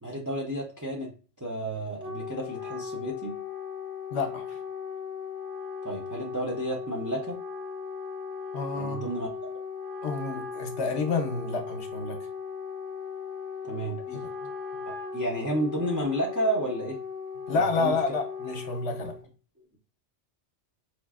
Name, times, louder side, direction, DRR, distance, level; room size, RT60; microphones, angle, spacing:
voice 1, 0.0-1.1 1.4-3.3 5.8-7.4 8.7-9.3 13.6-14.0 15.1-17.0 17.5-18.2, right 1 dB, 25° right, 0.4 m, -31 dB
Wind instrument woodwind instrument, 1.8-19.2, left 6 dB, 90° right, 1.2 m, -37 dB
voice 2, 4.1-4.6 8.5-9.1 10.0-12.2 14.1-14.2 17.5-19.2, left 4 dB, 65° left, 1.0 m, -29 dB
4.3 x 2.4 x 2.4 m
omnidirectional pair, 1.2 m